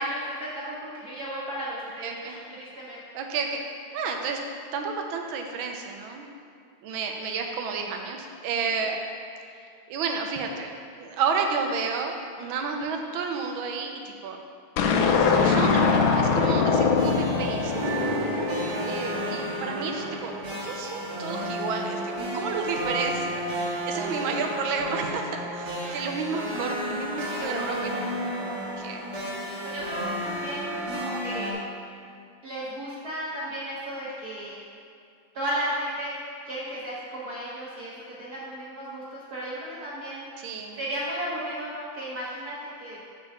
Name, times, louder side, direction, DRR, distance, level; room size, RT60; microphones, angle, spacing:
voice 1, 0.0-3.0 8.7-8.9 18.2-18.5 25.7-25.9 29.6-31.6 32.4-34.6 35.3-36.2 36.4-40.3 40.7-43.0, right 1 dB, 50° right, -7 dB, 1.4 m, -34 dB
voice 2, 2.0-2.3 3.1-3.6 3.9-4.4 4.7-6.2 6.8-9.0 9.9-10.7 11.0-14.4 15.4-17.7 18.9-20.4 20.6-28.2 28.8-29.0 40.4-40.8, right 5 dB, 70° right, 3 dB, 1.5 m, -31 dB
sound 1, 14.8-19.2, left 5 dB, 75° left, 1.4 m, -23 dB
sound 2, 16.5-31.5, right 1 dB, 20° right, 1.3 m, -32 dB
6.9 x 4.6 x 6.6 m, 2.3 s
omnidirectional pair, 2.4 m